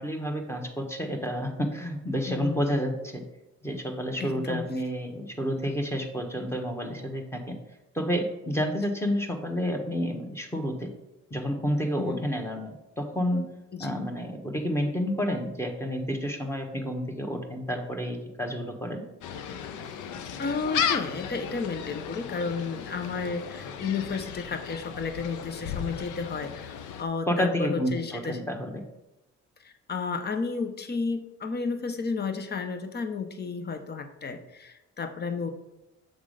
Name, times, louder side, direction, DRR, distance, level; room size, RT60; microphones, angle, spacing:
voice 1, 0.0-3.2 3.6-7.5 7.9-10.9 11.3-13.4 13.8-19.0 27.3-28.8, equal, 10° left, 3 dB, 1.3 m, -30 dB
voice 2, 2.3-2.8 4.2-4.7 12.0-12.2 13.7-13.9 20.4-28.4 29.6-35.5, left 5 dB, 35° left, 8 dB, 0.9 m, -32 dB
Gull seagull, 19.2-27.0, left 8 dB, 80° left, 0.7 m, -35 dB
7.4 x 3.6 x 5.0 m, 0.95 s
cardioid pair, 90°, 30 cm